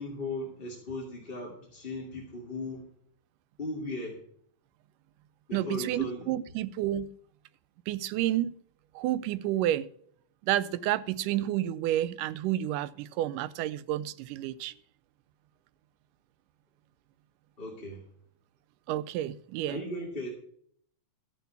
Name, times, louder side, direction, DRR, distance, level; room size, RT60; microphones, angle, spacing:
voice 1, 0.0-2.8 3.6-4.2 5.5-6.4 17.6-18.0 19.7-20.3, left 2 dB, 20° left, 1.7 m, -37 dB
voice 2, 5.5-7.1 7.9-8.5 9.0-9.9 10.4-14.7 18.9-19.8, right 13 dB, 85° right, 2.2 m, -30 dB
13.0 x 7.0 x 5.6 m
omnidirectional pair, 3.7 m